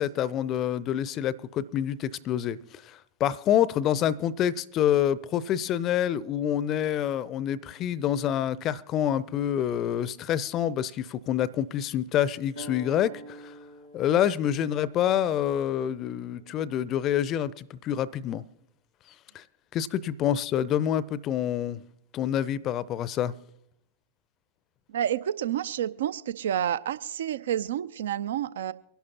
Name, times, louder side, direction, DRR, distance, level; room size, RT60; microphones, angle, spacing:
voice 1, 0.0-2.6 3.2-13.5 13.9-18.4 19.3-19.4 19.7-21.8 22.1-23.3, left 10 dB, 35° left, 0.6 m, -27 dB
sound 1, 12.5-17.7, right 1 dB, 85° right, 2.5 m, -48 dB
voice 2, 24.9-28.7, right 10 dB, 60° right, 0.5 m, -29 dB
24.0 x 11.5 x 2.9 m
figure-of-eight pair, 90°, 0 cm